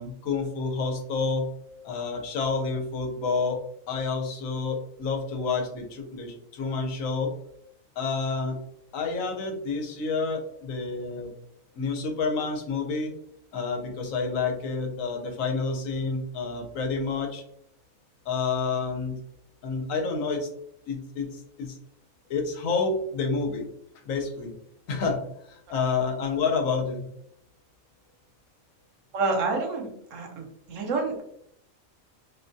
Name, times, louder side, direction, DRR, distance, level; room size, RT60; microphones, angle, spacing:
voice 1, 0.0-1.5 1.8-3.6 3.9-7.3 8.0-8.6 8.9-11.3 11.7-13.1 13.5-17.4 18.3-19.1 19.6-20.5 20.9-21.8 22.3-23.7 24.1-24.5 24.9-27.1, left 4 dB, 75° left, 3 dB, 1.0 m, -29 dB
voice 2, 29.1-31.2, right 3 dB, 70° right, 3 dB, 1.0 m, -28 dB
2.6 x 2.2 x 2.5 m, 0.72 s
omnidirectional pair, 1.4 m